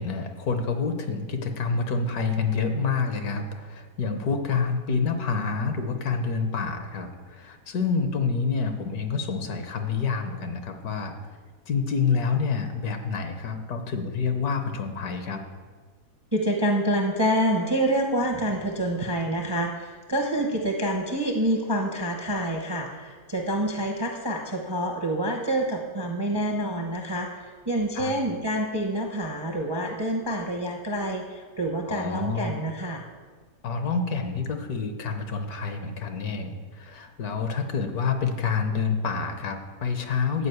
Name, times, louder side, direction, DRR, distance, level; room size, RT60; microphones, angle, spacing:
voice 1, 0.0-11.1 11.7-15.4 28.0-28.1 31.9-32.6 33.6-40.5, left 5 dB, 65° left, 6 dB, 1.3 m, -28 dB
voice 2, 16.3-33.0, right 1 dB, 25° right, 2 dB, 0.6 m, -27 dB
9.7 x 5.1 x 7.8 m, 1.5 s
omnidirectional pair, 1.8 m